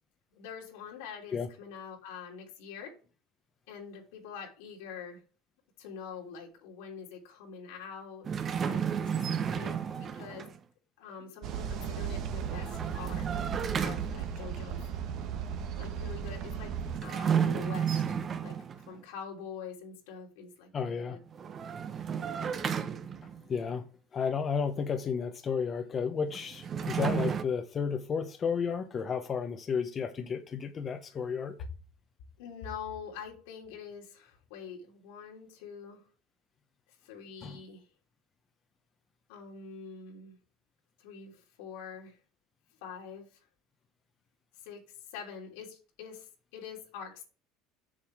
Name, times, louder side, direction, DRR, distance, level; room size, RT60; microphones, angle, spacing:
voice 1, 0.3-3.0 3.7-5.2 5.8-8.3 8.7-10.6 11.0-13.5 13.8-14.8 15.8-16.7 17.0-18.2 18.4-21.2 31.1-31.3 32.4-36.1 36.9-37.9 39.3-40.4 41.0-42.2 42.8-43.5 44.5-47.2, left 6 dB, 85° left, 3.3 m, -45 dB
sound 1, 8.2-10.6 12.4-14.4 16.9-18.9 21.3-23.5 26.3-27.4, right 7 dB, 35° right, 0.9 m, -32 dB
sound 2, 11.4-17.0, right 7 dB, 60° right, 1.2 m, -36 dB
voice 2, 20.7-21.2 23.5-23.8 24.1-31.5 37.4-37.6, left 6 dB, 35° left, 0.9 m, -32 dB
7.3 x 6.8 x 4.8 m
supercardioid pair, 105°, 0 cm